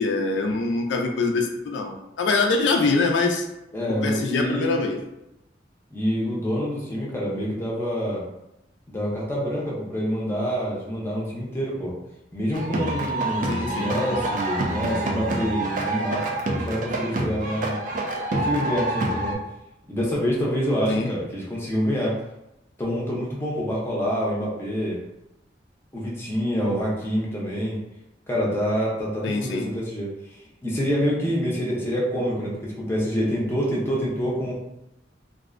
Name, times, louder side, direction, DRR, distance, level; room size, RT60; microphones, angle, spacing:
voice 1, 0.0-3.4 4.0-5.0 13.4-13.9 20.9-21.1 29.2-29.7, left 3 dB, 80° left, 2 dB, 0.3 m, -24 dB
voice 2, 3.7-4.7 5.9-8.2 8.9-11.9 12.3-16.3 16.5-17.8 18.3-19.4 19.9-22.2 22.8-25.0 25.9-27.8 28.3-34.6, equal, 15° left, -5 dB, 0.5 m, -26 dB
sound 1, 12.5-19.3, right 2 dB, 45° right, 0.3 m, -27 dB
2.5 x 2.0 x 2.4 m, 0.89 s
head